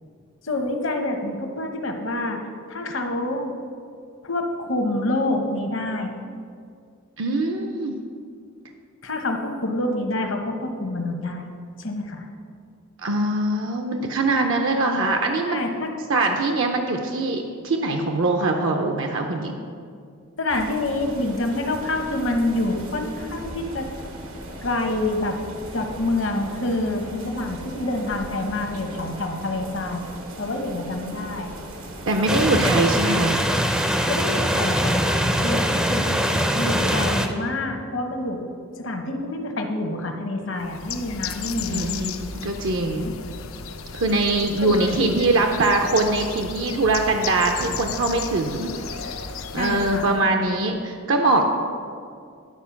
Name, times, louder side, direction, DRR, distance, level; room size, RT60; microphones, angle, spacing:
voice 1, 0.4-2.4 2.7-3.5 4.2-6.1 9.0-11.5 11.8-12.3 15.4-15.9 20.4-23.9 24.6-25.4 25.7-30.1 30.4-31.5 34.1-36.2 36.5-38.4 38.8-41.9 43.0-43.1 44.6-44.7 49.6-50.1, left 2 dB, 65° left, 4 dB, 0.9 m, -27 dB
voice 2, 7.2-8.0 13.0-15.6 16.1-19.6 32.1-33.4 41.6-43.1 43.9-48.7 49.0-49.1 49.5-51.5, right 2 dB, 70° right, 3 dB, 0.6 m, -22 dB
sound 1, 20.5-32.7, right 1 dB, 85° right, 1.2 m, -38 dB
sound 2, 32.3-37.3, equal, 5° right, 0.4 m, -22 dB
Bird, 40.6-50.2, left 5 dB, 80° left, 0.5 m, -34 dB
10.5 x 4.4 x 5.8 m, 2.3 s
head